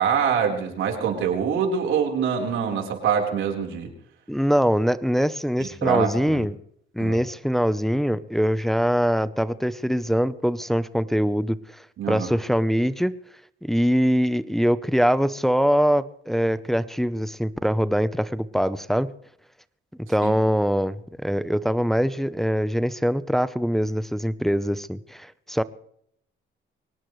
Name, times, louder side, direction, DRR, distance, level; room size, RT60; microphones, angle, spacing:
voice 1, 0.0-3.9 5.6-6.5 7.0-7.2 12.0-12.3 20.2-20.3, right 7 dB, 80° right, 2 dB, 4.3 m, -25 dB
voice 2, 4.3-6.5 6.9-13.1 13.6-19.1 20.1-25.6, equal, ahead, 14 dB, 0.8 m, -23 dB
23.5 x 18.5 x 3.3 m, 0.70 s
cardioid pair, 90°, 20 cm